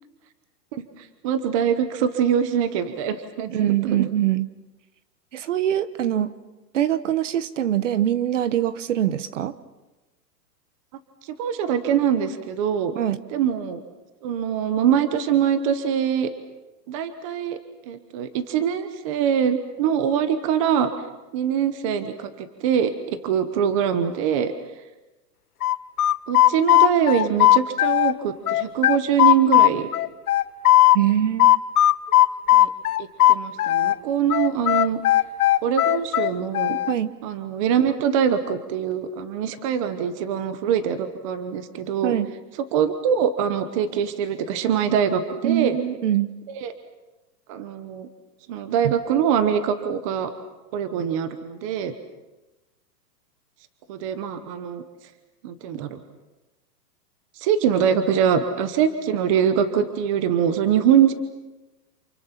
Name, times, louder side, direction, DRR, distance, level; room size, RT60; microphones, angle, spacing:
voice 1, 0.7-4.0 11.4-12.9 13.3-13.8 14.2-16.3 16.9-17.6 17.9-20.9 21.3-22.9 23.2-24.5 26.3-29.9 32.5-32.7 33.0-35.0 35.6-36.8 37.2-42.1 42.7-45.7 46.6-46.7 47.5-48.1 48.5-50.3 50.7-51.9 53.9-54.8 55.4-56.0 57.4-61.1, right 8 dB, 20° right, 10 dB, 1.0 m, -23 dB
voice 2, 3.5-4.5 5.3-6.4 6.7-9.5 12.9-13.2 30.9-31.5 36.9-37.1 42.0-42.3 45.4-46.3 48.8-48.9, right 11 dB, 45° right, 14 dB, 1.2 m, -23 dB
sound 1, 25.6-28.1 28.5-31.0 31.4-34.0 34.3-36.9, left 14 dB, 60° left, 0.9 m, -17 dB
29.5 x 28.5 x 5.9 m, 1.1 s
hypercardioid pair, 175°, 50 cm